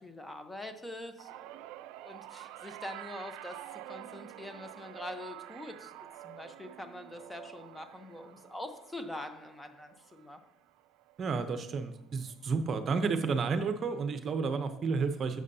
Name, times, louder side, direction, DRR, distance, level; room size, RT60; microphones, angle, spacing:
voice 1, 0.0-1.6 2.0-10.4, left 1 dB, 10° left, 7 dB, 0.9 m, -44 dB
sound 1, 1.2-11.6 12.0-12.4 13.5-13.6, right 14 dB, 85° right, 0.3 m, -49 dB
voice 2, 11.2-15.4, right 4 dB, 45° right, 9 dB, 0.7 m, -31 dB
11.0 x 7.5 x 2.8 m, 0.91 s
supercardioid pair, 100°, 0 cm